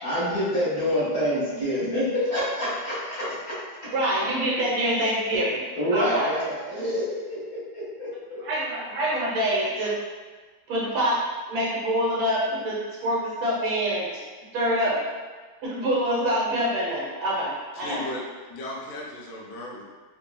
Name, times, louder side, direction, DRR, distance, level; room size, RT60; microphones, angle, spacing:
voice 1, 0.0-3.9 5.7-8.4, equal, 55° left, -10 dB, 1.8 m, -27 dB
voice 2, 3.9-5.6 5.9-6.3 8.4-9.9 10.7-11.2 11.5-12.8 13.0-14.1 14.5-15.0 15.6-18.0, equal, 75° right, -5 dB, 1.7 m, -25 dB
voice 3, 17.7-18.2 18.5-19.8, left 2 dB, 70° left, -4 dB, 0.8 m, -36 dB
4.2 x 2.8 x 2.2 m, 1.4 s
omnidirectional pair, 2.2 m